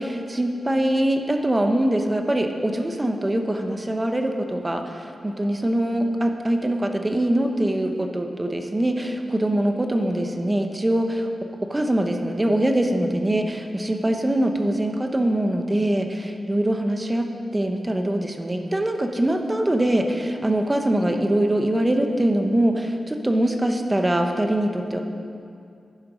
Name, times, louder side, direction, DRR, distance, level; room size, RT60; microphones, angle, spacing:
voice 1, 0.0-11.3 11.7-17.3 17.5-25.0, right 1 dB, 15° right, 4 dB, 0.8 m, -23 dB
11.0 x 11.0 x 5.0 m, 2.5 s
wide cardioid pair, 150°, 0 cm